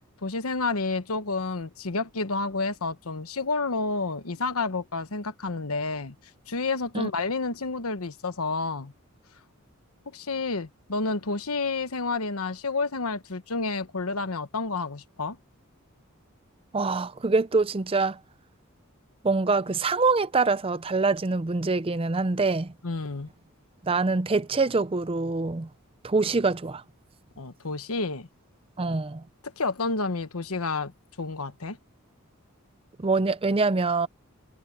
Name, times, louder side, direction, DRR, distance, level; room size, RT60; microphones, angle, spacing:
voice 1, 0.2-6.2 6.5-8.9 10.1-15.4 22.8-23.3 27.4-28.3 29.4-30.9 31.2-31.8, left 3 dB, 80° left, 1.2 m, -30 dB
voice 2, 16.7-18.2 19.2-22.7 23.8-25.7 26.0-26.8 28.8-29.3 33.0-34.1, right 3 dB, 25° right, 0.5 m, -25 dB
head